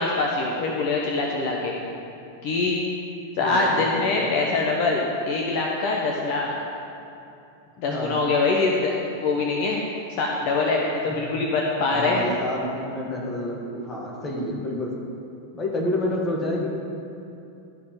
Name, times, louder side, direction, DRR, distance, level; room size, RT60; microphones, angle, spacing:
voice 1, 0.0-1.7 2.4-2.8 3.4-6.5 7.8-8.9 9.2-9.8 10.2-12.2, left 3 dB, 45° left, -1 dB, 1.0 m, -24 dB
voice 2, 3.4-4.2 7.9-8.2 11.1-11.2 11.9-14.9 15.5-16.8, left 1 dB, 20° left, -1 dB, 1.8 m, -29 dB
11.5 x 4.3 x 7.5 m, 2.7 s
figure-of-eight pair, 90°, 0 cm